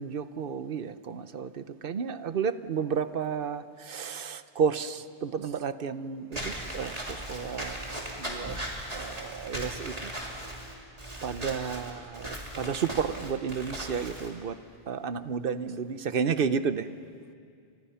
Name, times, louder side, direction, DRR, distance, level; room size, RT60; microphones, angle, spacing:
voice 1, 0.0-8.6 8.9-10.1 11.2-14.6 14.9-16.9, right 6 dB, 60° right, 13 dB, 1.0 m, -32 dB
Walk footsteps / Squeak, 6.3-14.3, right 1 dB, 35° right, 3.3 m, -38 dB
30.0 x 26.0 x 5.7 m, 2.3 s
omnidirectional pair, 1.1 m